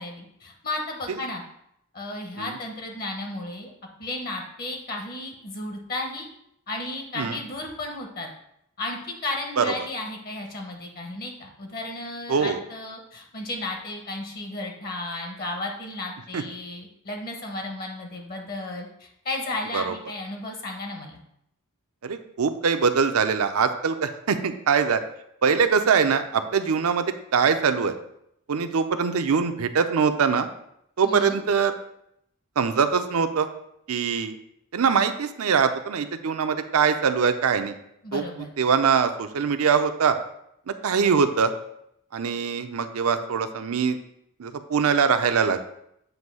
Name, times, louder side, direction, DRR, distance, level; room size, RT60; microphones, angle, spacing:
voice 1, 0.0-1.4 1.9-3.7 4.0-6.3 6.7-8.3 8.8-21.2 31.0-31.4 38.0-38.5, left 2 dB, 45° left, 2 dB, 0.9 m, -34 dB
voice 2, 12.3-12.6 16.3-16.4 19.7-19.9 22.0-25.0 25.4-28.0 28.5-30.5 31.0-31.7 32.6-33.5 33.9-34.4 34.7-37.7 38.1-38.2 38.6-40.2 40.7-41.5 42.1-44.0 44.4-45.6, right 6 dB, 70° right, 9 dB, 0.5 m, -23 dB
7.9 x 2.6 x 5.4 m, 0.76 s
head